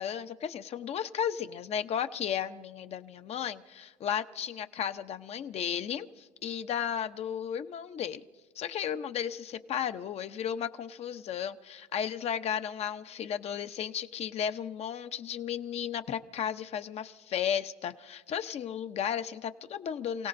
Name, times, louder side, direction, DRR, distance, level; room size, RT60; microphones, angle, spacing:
voice 1, 0.0-8.2 8.6-20.3, left 8 dB, 50° left, 10 dB, 0.8 m, -34 dB
29.0 x 17.5 x 2.6 m, 1.5 s
cardioid pair, 125°, 14 cm